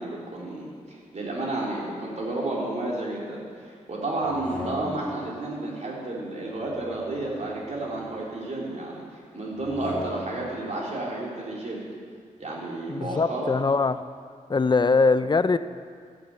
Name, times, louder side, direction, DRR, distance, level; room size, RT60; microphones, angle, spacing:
voice 1, 0.0-11.8 12.4-13.5, right 2 dB, 55° right, -4 dB, 3.5 m, -31 dB
sound 1, 4.2-5.3 6.6-8.2 9.5-10.6, left 1 dB, 5° left, 3.2 m, -40 dB
voice 2, 12.9-14.1 14.5-15.6, left 4 dB, 35° left, 12 dB, 0.5 m, -22 dB
13.0 x 6.4 x 8.8 m, 2.1 s
cardioid pair, 60°, 14 cm